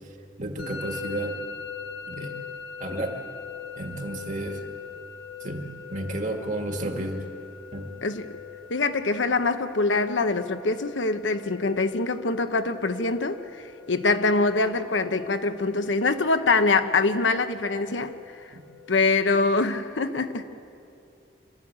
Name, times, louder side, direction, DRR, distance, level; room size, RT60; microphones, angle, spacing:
voice 1, 0.4-1.4 2.1-2.4 2.8-3.2 3.8-4.6 5.4-7.3 7.7-7.9 18.5-18.6, right 1 dB, 45° right, 3 dB, 2.0 m, -32 dB
Musical instrument, 0.6-19.5, left 7 dB, 65° left, 1.8 m, -42 dB
voice 2, 8.0-8.4 8.7-18.1 18.4-18.5 18.9-20.4, left 3 dB, 90° left, 9 dB, 1.1 m, -24 dB
27.0 x 13.0 x 8.7 m, 2.6 s
head